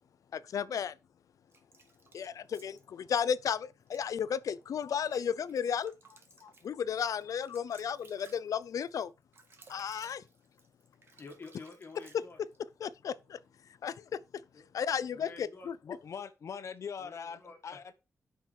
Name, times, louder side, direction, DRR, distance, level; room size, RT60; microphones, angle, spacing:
voice 1, 0.3-0.9 2.1-5.9 6.4-9.1 9.7-10.2 12.8-13.4 13.8-14.4 14.7-15.8, left 8 dB, 85° left, 0.6 m, -34 dB
sound 1, 1.5-3.1 3.8-4.1 4.6-12.6, right 3 dB, 45° right, 1.8 m, -60 dB
voice 2, 11.2-12.4 14.5-14.6 15.1-15.7 17.0-17.8, left 3 dB, 40° left, 1.8 m, -49 dB
voice 3, 15.8-17.9, left 6 dB, 60° left, 1.1 m, -42 dB
9.8 x 6.0 x 4.6 m
wide cardioid pair, 180°, 6 cm